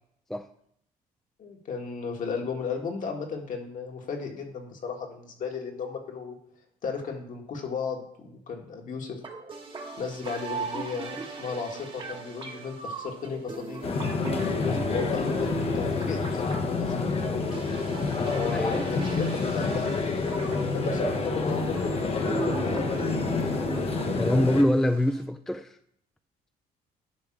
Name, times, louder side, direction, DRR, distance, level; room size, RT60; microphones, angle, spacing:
voice 1, 1.4-6.4 6.8-9.2 10.0-13.8 14.6-17.6 18.3-19.3 19.5-19.9 20.7-23.1, left 5 dB, 50° left, 1.9 m, -35 dB
sound 1, 9.2-25.2, right 3 dB, 30° right, 1.4 m, -37 dB
sound 2, 13.8-24.6, left 4 dB, 35° left, 1.1 m, -28 dB
voice 2, 18.5-18.8 24.1-25.7, left 1 dB, ahead, 0.4 m, -24 dB
10.5 x 3.7 x 6.0 m
cardioid pair, 110°, 17 cm